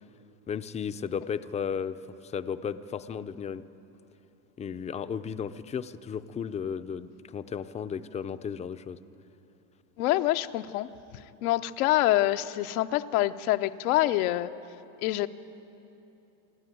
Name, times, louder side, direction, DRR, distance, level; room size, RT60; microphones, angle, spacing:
voice 1, 0.5-3.6 4.6-9.0, left 7 dB, 15° left, 11 dB, 0.4 m, -34 dB
voice 2, 10.0-10.9 11.4-14.5 15.0-15.3, left 15 dB, 85° left, 9 dB, 0.8 m, -26 dB
26.0 x 13.0 x 9.2 m, 2.9 s
supercardioid pair, 130°, 42 cm